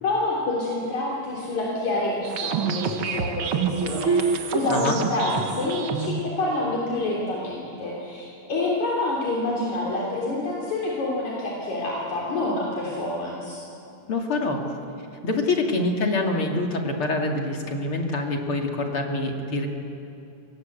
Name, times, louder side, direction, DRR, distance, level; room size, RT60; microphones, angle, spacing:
voice 1, 0.0-13.6, left 2 dB, 60° left, -4 dB, 4.7 m, -27 dB
sound 1, 2.2-6.2, right 6 dB, 55° right, 1.7 m, -27 dB
voice 2, 4.7-5.0 14.1-14.6 15.2-19.7, left 2 dB, 45° left, 1 dB, 3.0 m, -25 dB
29.5 x 23.5 x 8.2 m, 2.8 s
omnidirectional pair, 3.7 m